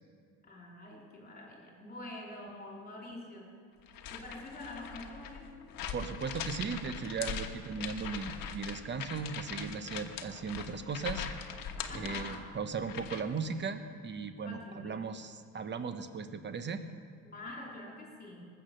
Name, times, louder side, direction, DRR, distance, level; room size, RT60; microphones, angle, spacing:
voice 1, 0.4-3.5 4.1-5.8 11.9-12.5 14.4-15.0 17.3-18.5, left 2 dB, 25° left, -1 dB, 3.4 m, -46 dB
sound 1, 3.9-13.4, left 7 dB, 60° left, 1.3 m, -41 dB
voice 2, 5.9-11.3 11.9-16.8, right 5 dB, 30° right, 9 dB, 0.9 m, -37 dB
20.0 x 8.0 x 6.7 m, 2.3 s
cardioid pair, 145°, 39 cm